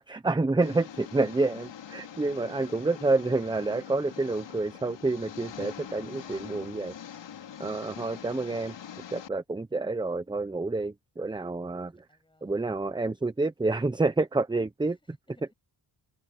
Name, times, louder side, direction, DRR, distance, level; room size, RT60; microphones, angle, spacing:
voice 1, 0.0-6.9 7.6-8.8 9.1-12.0 12.4-15.2, right 3 dB, 10° right, 0.7 m, -28 dB
Engine, 0.6-9.3, left 9 dB, 75° left, 3.4 m, -44 dB
voice 2, 11.9-12.8 14.8-15.5, left 2 dB, 10° left, 7.1 m, -66 dB
wide cardioid pair, 145°, 43 cm